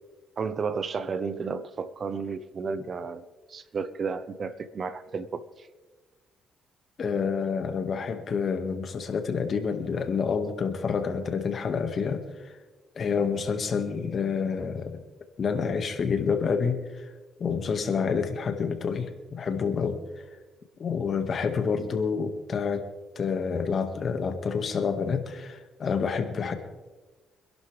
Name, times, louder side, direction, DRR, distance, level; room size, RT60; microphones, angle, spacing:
voice 1, 0.4-3.2 3.5-5.7, right 5 dB, 45° right, 0.9 m, -32 dB
voice 2, 7.0-12.5 12.9-15.0 15.4-17.1 17.4-20.0 20.8-22.8 23.1-26.6, left 5 dB, 50° left, 1.7 m, -28 dB
25.5 x 11.5 x 3.4 m
cardioid pair, 90°, 0 cm